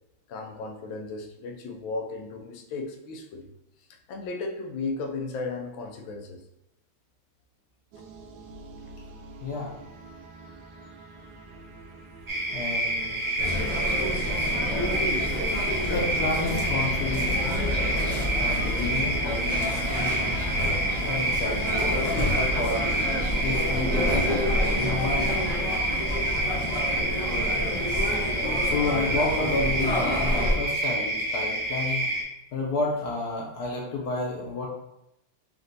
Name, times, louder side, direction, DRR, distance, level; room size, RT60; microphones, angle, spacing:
voice 1, 0.3-3.5 3.9-6.4 34.6-34.7, left 3 dB, 85° left, 4 dB, 1.4 m, -35 dB
sound 1, 7.9-23.6, right 2 dB, 85° right, 1.4 m, -44 dB
sound 2, 12.3-32.2, right 1 dB, 35° right, 0.6 m, -28 dB
voice 2, 12.5-13.2 15.9-18.0 18.3-20.2 20.6-22.8 23.4-24.2 24.7-25.4 28.6-32.1 32.5-34.7, left 3 dB, 65° left, -1 dB, 1.1 m, -31 dB
sound 3, 13.4-30.5, left 1 dB, 35° left, 0.6 m, -28 dB
4.3 x 2.6 x 3.9 m, 0.86 s
omnidirectional pair, 2.1 m